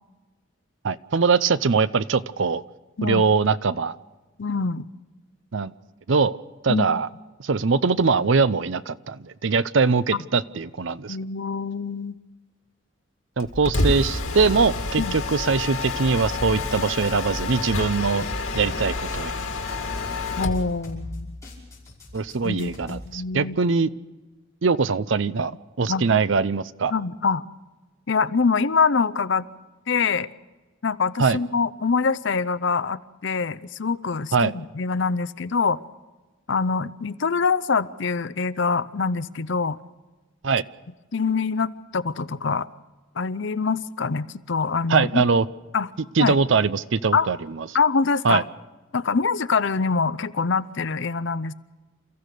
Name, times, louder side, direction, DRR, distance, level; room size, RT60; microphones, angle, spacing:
voice 1, 0.8-2.6 3.0-4.0 5.5-5.7 6.1-6.4 6.6-7.1 7.4-11.2 13.4-18.3 18.5-19.3 19.7-19.8 22.1-23.9 24.6-25.5 25.8-26.9 31.2-31.4 34.3-34.5 40.4-40.6 44.9-45.5 46.2-47.7 48.2-48.4, right 4 dB, 60° right, 16 dB, 0.6 m, -22 dB
voice 2, 4.4-4.8 6.7-7.0 10.1-10.2 11.1-12.2 15.0-15.1 20.4-21.4 22.4-23.6 25.9-26.1 26.9-27.4 28.1-29.4 29.9-30.3 30.8-35.8 36.5-39.8 41.1-42.7 43.2-45.2 45.7-45.9 46.2-46.4 47.1-47.3 47.7-48.4 48.9-51.5, left 5 dB, 60° left, 15 dB, 0.6 m, -24 dB
Mechanisms, 13.4-20.7, left 3 dB, 90° left, 2.4 m, -28 dB
sound 1, 13.8-23.1, left 1 dB, 15° left, 5.6 m, -40 dB
29.0 x 14.5 x 6.7 m, 1.2 s
head